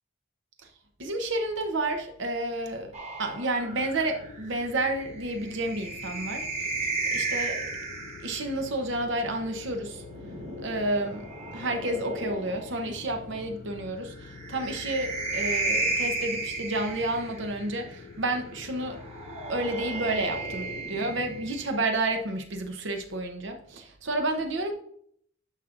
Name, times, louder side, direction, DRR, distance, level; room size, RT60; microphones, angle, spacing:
voice 1, 1.0-6.9 7.1-7.6 8.2-10.0 10.6-19.0 19.5-24.7, right 2 dB, 65° right, 0.9 m, -30 dB
sound 1, 2.9-8.5 9.8-12.8 14.2-17.7 18.9-21.8, right 3 dB, 30° right, 1.7 m, -34 dB
sound 2, 3.7-20.8, left 5 dB, 40° left, 0.3 m, -46 dB
9.8 x 5.9 x 2.5 m
head